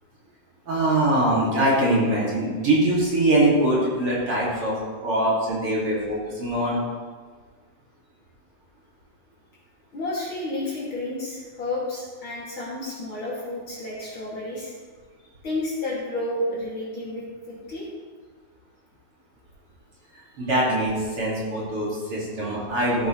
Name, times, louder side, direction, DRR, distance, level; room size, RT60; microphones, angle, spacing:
voice 1, 0.7-4.7 5.0-6.8 20.4-23.1, right 1 dB, 45° right, -6 dB, 3.0 m, -22 dB
voice 2, 9.9-14.7 15.4-17.9 20.4-20.5, left 1 dB, 45° left, -6 dB, 2.7 m, -31 dB
14.5 x 8.0 x 3.1 m, 1.5 s
omnidirectional pair, 3.5 m